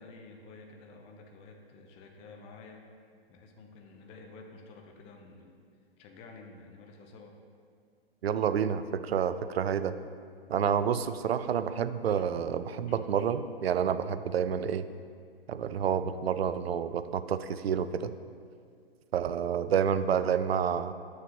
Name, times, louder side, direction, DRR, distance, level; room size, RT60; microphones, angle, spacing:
voice 1, 0.0-2.8 3.3-5.6 6.0-7.4 12.2-12.3 12.9-13.3, left 3 dB, 20° left, 3 dB, 0.6 m, -51 dB
voice 2, 8.2-10.0 10.5-14.9 15.5-18.1 19.1-20.9, right 8 dB, 80° right, 12 dB, 0.5 m, -29 dB
9.1 x 6.3 x 2.9 m, 2.2 s
hypercardioid pair, 125°, 31 cm